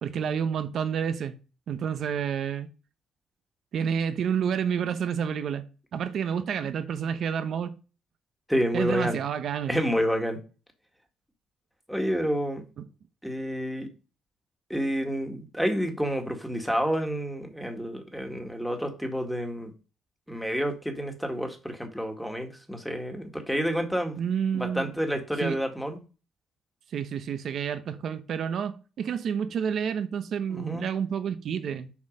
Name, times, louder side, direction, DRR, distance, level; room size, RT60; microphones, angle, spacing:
voice 1, 0.0-1.3 1.7-2.7 3.7-5.6 5.9-7.8 8.7-9.8 24.2-24.9 25.4-25.6 26.9-31.9, right 7 dB, 65° right, 0.9 m, -29 dB
voice 2, 8.5-9.2 9.7-10.4 11.9-12.6 13.2-13.9 14.7-19.7 20.3-24.2 24.5-26.0 30.5-30.8, equal, ahead, 1.8 m, -29 dB
7.2 x 4.5 x 5.1 m
cardioid pair, 90°, 0 cm